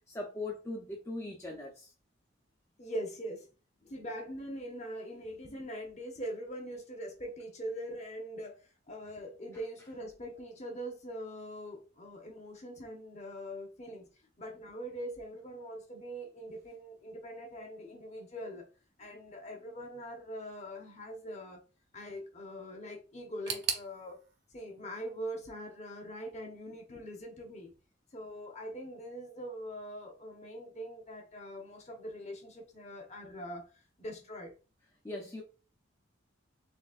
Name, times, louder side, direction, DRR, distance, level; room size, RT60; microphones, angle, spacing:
voice 1, 0.1-1.9 35.0-35.4, left 2 dB, 15° left, 0.5 m, -40 dB
voice 2, 2.8-3.5 3.8-8.6 8.9-14.1 14.4-18.7 19.0-21.6 21.9-24.2 24.5-27.7 28.1-33.6 34.0-34.5, equal, 35° left, 1.0 m, -42 dB
sound 1, 23.5-26.3 26.6-27.4 27.7-27.8 28.6-28.7, right 7 dB, 55° right, 0.7 m, -41 dB
4.1 x 3.4 x 2.4 m
head